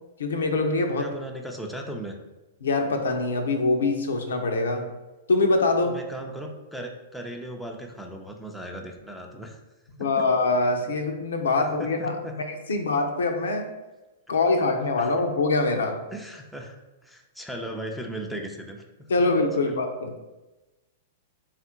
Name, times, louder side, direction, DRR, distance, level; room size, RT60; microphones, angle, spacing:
voice 1, 0.2-1.1 2.6-4.9 5.3-6.0 10.0-12.2 12.7-13.7 14.3-16.0 19.1-20.2, left 3 dB, 80° left, 4 dB, 0.5 m, -24 dB
voice 2, 1.0-2.2 5.8-9.6 10.0-10.3 11.6-12.4 15.0-15.2 16.1-19.1 19.6-19.8, right 1 dB, ahead, 1 dB, 0.5 m, -37 dB
3.5 x 2.4 x 4.3 m, 1.1 s
hypercardioid pair, 110°, 0 cm